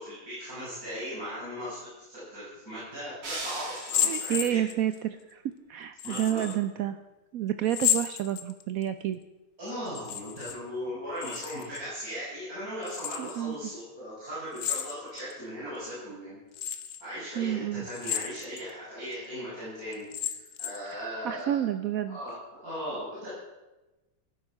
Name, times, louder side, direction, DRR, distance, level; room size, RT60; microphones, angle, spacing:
voice 1, 0.0-4.6 6.0-6.5 9.6-16.7 17.0-21.6 22.1-22.3 22.6-23.3, equal, 45° right, -11 dB, 7.0 m, -38 dB
sound 1, 3.2-4.5, right 2 dB, 65° right, 3.0 m, -38 dB
sound 2, 3.7-5.0 6.0-6.6 7.7-8.8 9.9-10.6 10.9-11.8 12.8-13.4 14.5-15.3 15.9-16.0 16.5-17.0 17.9-18.7 19.1-19.2 19.9-20.9, left 9 dB, 65° left, 1.4 m, -32 dB
voice 2, 4.1-7.0 7.3-9.2 13.2-13.6 17.4-17.9 21.2-22.2, right 11 dB, 80° right, 11 dB, 0.7 m, -30 dB
16.0 x 9.7 x 5.8 m, 1.1 s
omnidirectional pair, 2.1 m